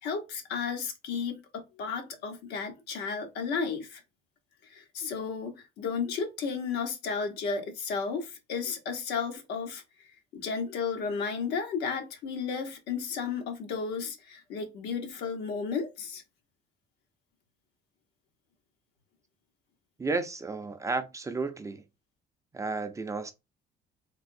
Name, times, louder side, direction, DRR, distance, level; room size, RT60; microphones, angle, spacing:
voice 1, 0.0-4.0 4.7-9.8 10.3-16.2, left 5 dB, 80° left, 0.9 m, -33 dB
voice 2, 20.0-21.8 22.5-23.3, right 3 dB, 20° right, 0.4 m, -32 dB
3.4 x 2.5 x 2.5 m
cardioid pair, 110°, 17 cm